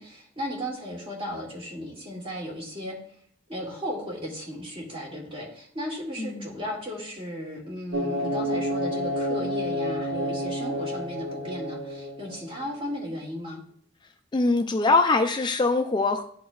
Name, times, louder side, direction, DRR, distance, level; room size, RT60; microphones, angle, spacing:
voice 1, 0.0-3.0 3.5-13.6, equal, 30° right, -1 dB, 2.0 m, -35 dB
voice 2, 6.2-6.6 14.3-16.2, left 3 dB, 25° left, 6 dB, 0.3 m, -23 dB
sound 1, 7.9-12.6, equal, 70° right, 0.9 m, -29 dB
11.5 x 4.2 x 2.3 m, 0.62 s
head